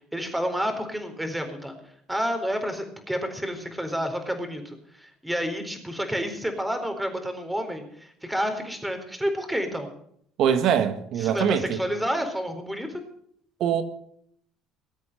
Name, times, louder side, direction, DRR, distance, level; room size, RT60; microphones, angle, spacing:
voice 1, 0.1-1.7 2.1-9.9 11.2-13.0, equal, 5° right, 4.2 m, -29 dB
voice 2, 10.4-11.8 13.6-13.8, right 8 dB, 65° right, 1.9 m, -23 dB
20.5 x 8.2 x 7.8 m
hypercardioid pair, 70°, 0 cm